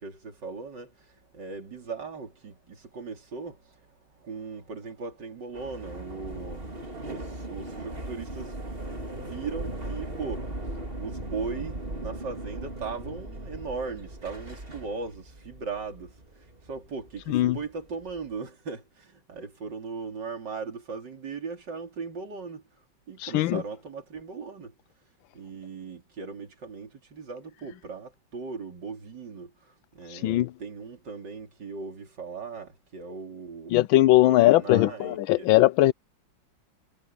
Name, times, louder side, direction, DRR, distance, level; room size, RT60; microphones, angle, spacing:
voice 1, 0.0-24.8 25.3-33.8 34.3-35.5, right 4 dB, 60° right, 3.8 m, -38 dB
sound 1, 5.5-18.3, right 1 dB, 25° right, 3.3 m, -38 dB
voice 2, 23.2-23.6 30.1-30.5 33.7-35.9, left 15 dB, 80° left, 1.4 m, -20 dB
omnidirectional pair, 2.1 m